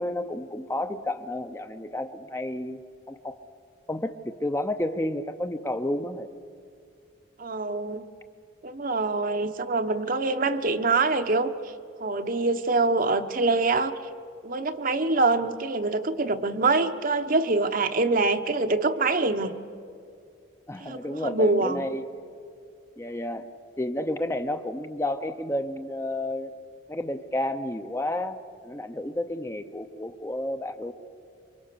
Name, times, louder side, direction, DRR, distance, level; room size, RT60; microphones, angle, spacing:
voice 1, 0.0-2.8 3.1-3.4 3.9-6.3 20.7-22.1 23.0-23.5 23.8-26.5 26.9-30.9, left 1 dB, 15° left, 8 dB, 0.7 m, -31 dB
voice 2, 7.4-8.1 8.6-11.5 12.0-14.0 14.4-19.6 20.8-21.8, right 3 dB, 45° right, 8 dB, 1.0 m, -25 dB
28.0 x 24.0 x 6.9 m, 2.4 s
head